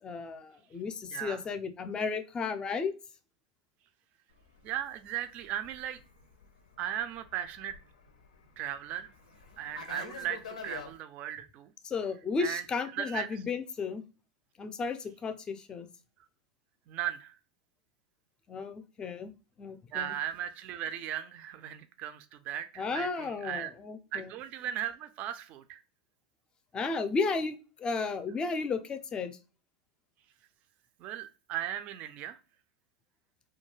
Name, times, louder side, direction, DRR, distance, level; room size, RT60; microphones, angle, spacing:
voice 1, 0.0-2.9 11.8-14.0 14.6-15.9 18.5-19.3 19.6-20.1 22.8-24.3 26.7-29.4, left 4 dB, 25° left, 9 dB, 0.4 m, -34 dB
voice 2, 1.1-1.4 4.6-6.0 6.8-7.8 8.6-9.1 9.6-11.7 12.4-12.6 12.9-13.4 16.9-17.4 19.9-23.7 24.1-25.8 31.0-32.4, right 11 dB, 45° right, 10 dB, 0.3 m, -37 dB
Fixed-wing aircraft airplane, 4.4-10.9, left 5 dB, 85° left, 0.5 m, -48 dB
2.3 x 2.2 x 3.1 m, 0.34 s
hypercardioid pair, 100°, 4 cm